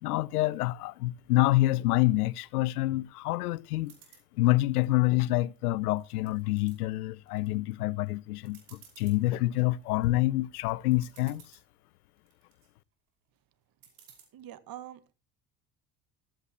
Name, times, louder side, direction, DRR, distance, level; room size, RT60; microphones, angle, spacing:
voice 1, 0.0-3.9 4.3-11.4, left 18 dB, 80° left, 0.8 m, -27 dB
sound 1, 3.8-4.3 4.8-5.6 6.0-6.8 7.3-7.7 8.1-8.2 8.5-9.2 9.7-10.1 10.6-10.7 10.9-11.7 12.2-12.7 13.8-14.2, right 8 dB, 80° right, 5.3 m, -57 dB
voice 2, 14.3-15.1, right 12 dB, 50° right, 1.8 m, -44 dB
14.5 x 14.5 x 3.0 m
hypercardioid pair, 60°, 45 cm